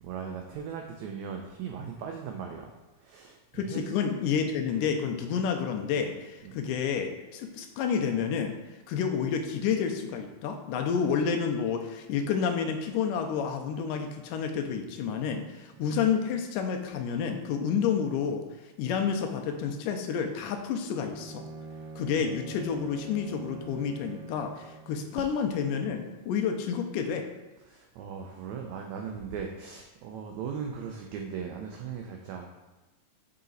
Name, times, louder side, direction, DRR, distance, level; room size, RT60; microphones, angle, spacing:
voice 1, 0.0-3.9 6.4-6.6 15.8-15.9 21.7-21.9 27.6-32.5, right 6 dB, 90° right, 3 dB, 1.6 m, -38 dB
voice 2, 3.5-8.6 8.9-18.4 18.8-21.5 22.0-27.3, left 7 dB, 80° left, 4 dB, 2.1 m, -29 dB
Bowed string instrument, 21.0-25.1, right 3 dB, 70° right, 1.9 m, -44 dB
6.7 x 4.0 x 3.8 m, 1.1 s
omnidirectional pair, 3.8 m